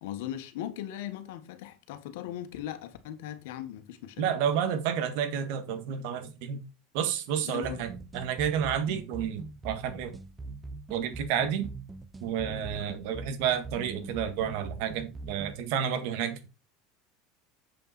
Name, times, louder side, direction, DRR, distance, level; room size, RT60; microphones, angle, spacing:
voice 1, 0.0-4.2 7.5-7.8, left 11 dB, 80° left, 1.6 m, -38 dB
voice 2, 4.2-6.6 6.9-10.2 10.9-11.7 12.2-16.5, right 8 dB, 65° right, 1.8 m, -30 dB
sound 1, 7.6-15.6, right 3 dB, 15° right, 0.8 m, -42 dB
7.6 x 6.9 x 4.3 m
supercardioid pair, 140°, 0 cm